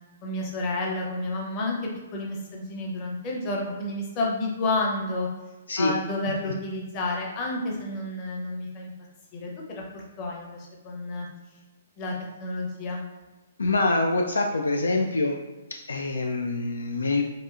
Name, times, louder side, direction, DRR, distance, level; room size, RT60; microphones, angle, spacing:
voice 1, 0.2-1.8 2.1-5.3 5.8-8.9 9.3-11.3 12.0-12.1 12.4-13.1, left 2 dB, 30° left, -2 dB, 0.8 m, -30 dB
voice 2, 13.6-15.4 15.7-17.2, left 2 dB, 70° left, 2 dB, 0.3 m, -25 dB
4.1 x 2.6 x 2.4 m, 1.2 s
figure-of-eight pair, 120°, 0 cm